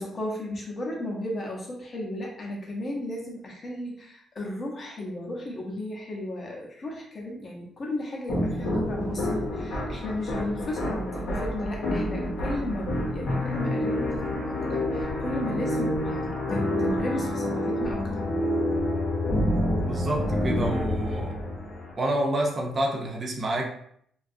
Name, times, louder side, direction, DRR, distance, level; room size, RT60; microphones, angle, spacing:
voice 1, 0.0-18.2, left 1 dB, 30° left, -1 dB, 0.6 m, -35 dB
sound 1, 8.3-21.9, left 1 dB, 60° left, 0.8 m, -28 dB
voice 2, 19.8-21.4 22.0-23.6, right 1 dB, 30° right, 0 dB, 0.5 m, -28 dB
2.7 x 2.3 x 2.5 m, 0.66 s
cardioid pair, 160°, 0 cm